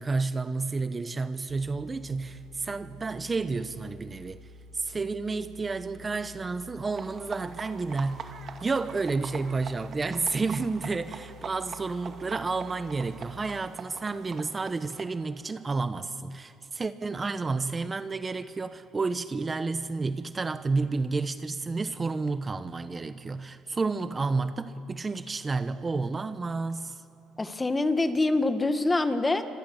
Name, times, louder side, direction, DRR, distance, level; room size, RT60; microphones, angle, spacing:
voice 1, 0.0-8.3 8.6-27.0, right 3 dB, 25° right, 1.1 m, -31 dB
sound 1, 1.5-13.3, left 1 dB, 85° right, 2.7 m, -50 dB
sound 2, 6.8-15.0, right 6 dB, 50° right, 2.4 m, -44 dB
voice 2, 27.4-29.5, left 2 dB, 20° left, 1.9 m, -25 dB
29.0 x 26.0 x 7.3 m
supercardioid pair, 90°, 0 cm